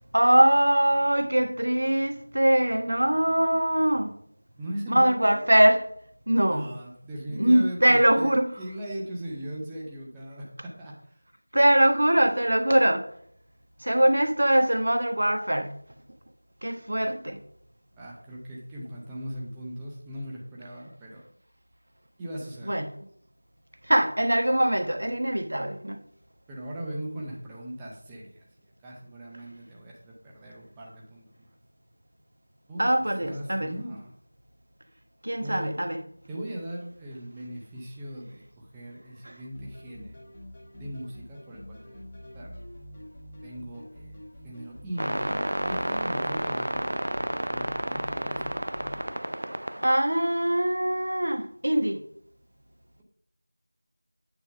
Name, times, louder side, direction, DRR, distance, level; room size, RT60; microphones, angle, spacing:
voice 1, 0.1-4.1 4.9-5.8 6.3-6.7 7.3-8.5 11.5-13.0 13.8-15.7 16.6-17.4 22.7-22.8 23.9-26.0 32.8-33.7 35.2-36.0 39.2-39.3 49.8-52.0, right 1 dB, 60° right, 1.1 m, -22 dB
voice 2, 4.6-5.4 6.5-11.1 18.0-21.2 22.2-22.8 26.5-28.5 28.8-31.2 32.7-34.1 35.4-35.8 36.3-40.2 40.7-42.5 43.4-44.2 44.4-47.2 47.5-48.5, right 1 dB, 5° right, 0.5 m, -39 dB
sound 1, 39.5-49.2, left 1 dB, 10° left, 0.9 m, -45 dB
sound 2, 45.0-50.0, right 1 dB, 80° right, 0.3 m, -31 dB
8.8 x 3.7 x 6.6 m
figure-of-eight pair, 180°, 0 cm